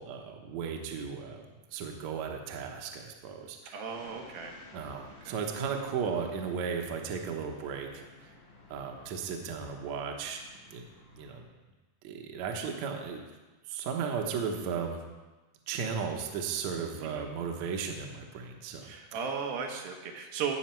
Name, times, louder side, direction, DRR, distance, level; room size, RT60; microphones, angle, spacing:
voice 1, 0.0-1.4 1.7-3.8 4.7-8.3 8.7-10.4 10.7-10.9 11.1-11.5 12.0-13.2 13.7-15.0 15.7-18.9, right 6 dB, 65° right, 2 dB, 2.0 m, -35 dB
voice 2, 3.7-4.6 5.3-5.4 17.0-17.2 18.8-20.6, right 6 dB, 80° right, 2 dB, 3.0 m, -36 dB
sound 1, 3.9-11.4, left 2 dB, 85° left, 5.2 m, -55 dB
17.5 x 6.5 x 4.5 m, 1.2 s
omnidirectional pair, 4.2 m